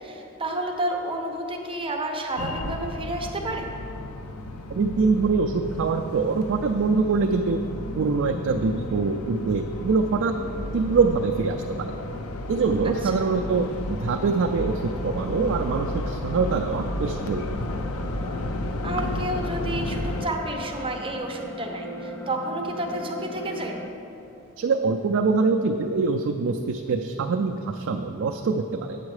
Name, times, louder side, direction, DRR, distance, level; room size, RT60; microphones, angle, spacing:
voice 1, 0.0-3.7 13.1-13.3 18.8-23.8, right 1 dB, 25° right, 2 dB, 0.8 m, -30 dB
sound 1, 2.4-20.3, left 1 dB, 75° left, 0.6 m, -33 dB
voice 2, 4.7-7.6 8.0-10.3 10.7-11.9 12.5-17.6 24.6-29.0, right 4 dB, 60° right, 4 dB, 0.4 m, -24 dB
sound 2, 13.3-23.9, equal, 10° left, 0.4 m, -40 dB
8.5 x 7.2 x 4.8 m, 2.8 s
head